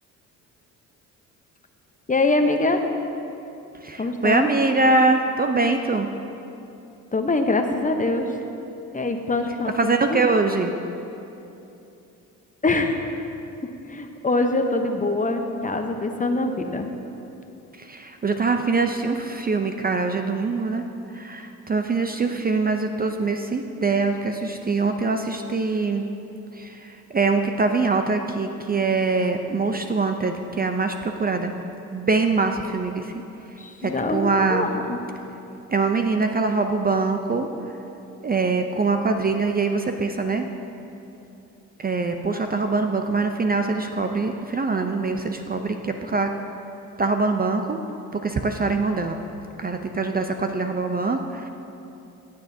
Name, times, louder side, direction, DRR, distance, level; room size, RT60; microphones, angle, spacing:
voice 1, 2.1-2.8 4.0-4.5 7.1-8.3 8.9-10.2 12.6-13.1 13.9-16.9 33.6-35.0, left 2 dB, 20° left, 5 dB, 0.8 m, -24 dB
voice 2, 3.8-6.1 9.8-10.7 17.8-20.9 21.1-26.0 26.5-31.5 31.9-33.2 33.8-34.7 35.7-37.5 38.2-40.5 41.8-46.3 47.0-47.8 48.1-49.2 49.6-51.5, right 3 dB, 25° right, 5 dB, 0.5 m, -23 dB
15.0 x 7.9 x 2.7 m, 2.8 s
supercardioid pair, 70°, 35 cm